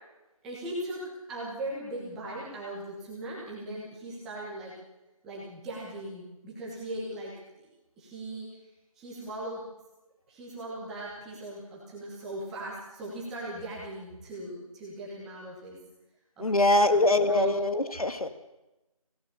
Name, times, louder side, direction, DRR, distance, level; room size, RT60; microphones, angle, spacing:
voice 1, 0.4-1.0 1.3-4.7 5.2-7.7 8.0-8.5 9.0-9.6 10.3-15.8 16.4-17.6, right 1 dB, ahead, -5 dB, 1.2 m, -39 dB
voice 2, 16.4-18.3, left 2 dB, 70° left, 8 dB, 2.4 m, -23 dB
26.5 x 17.0 x 6.8 m, 1.0 s
figure-of-eight pair, 170°, 19 cm